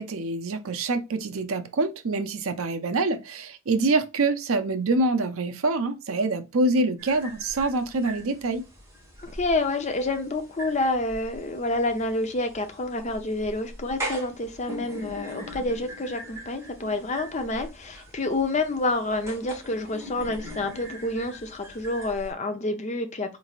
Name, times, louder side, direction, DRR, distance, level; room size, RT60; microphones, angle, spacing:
voice 1, 0.0-8.6, right 2 dB, 80° right, 0.6 m, -25 dB
sound 1, 7.0-22.3, equal, 15° right, 1.3 m, -41 dB
voice 2, 9.2-23.4, left 2 dB, 35° left, 0.7 m, -28 dB
4.1 x 3.3 x 2.4 m
head